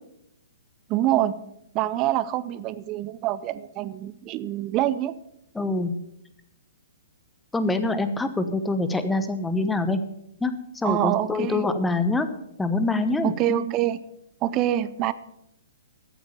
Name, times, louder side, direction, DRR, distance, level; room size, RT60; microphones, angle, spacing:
voice 1, 0.9-1.4 1.7-5.1 10.8-11.6 13.2-14.0 14.4-15.1, right 13 dB, 30° right, 15 dB, 0.7 m, -25 dB
voice 2, 5.5-5.9 7.5-10.0 10.4-12.3 12.6-13.3, left 2 dB, 5° left, 10 dB, 1.1 m, -25 dB
14.0 x 7.9 x 6.9 m, 0.80 s
figure-of-eight pair, 120°, 0 cm